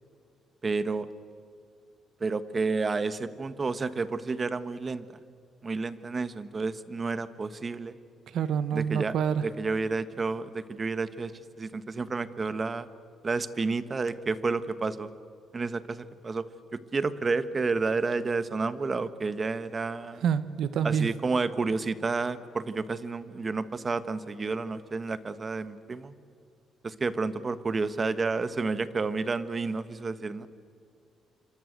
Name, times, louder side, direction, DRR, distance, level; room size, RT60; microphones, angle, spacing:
voice 1, 0.6-1.1 2.2-5.1 5.6-8.0 8.7-9.1 9.4-11.3 11.6-12.9 13.2-15.1 15.5-16.4 16.7-20.2 20.8-26.1 26.8-30.5, right 4 dB, 35° right, 12 dB, 1.4 m, -30 dB
voice 2, 8.3-9.4 20.2-21.1, right 7 dB, 75° right, 12 dB, 1.5 m, -27 dB
27.5 x 25.5 x 8.1 m, 2.2 s
cardioid pair, 90°, 0 cm